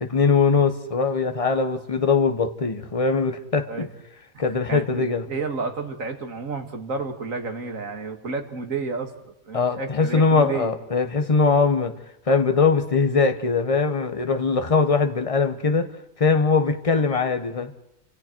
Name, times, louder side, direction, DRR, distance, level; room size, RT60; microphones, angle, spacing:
voice 1, 0.0-3.9 4.4-5.3 9.5-11.9 12.3-15.9 16.2-17.7, left 4 dB, 25° left, 8 dB, 1.2 m, -21 dB
voice 2, 4.3-10.7, right 4 dB, 70° right, 5 dB, 2.4 m, -31 dB
29.5 x 26.0 x 4.6 m, 0.82 s
omnidirectional pair, 1.5 m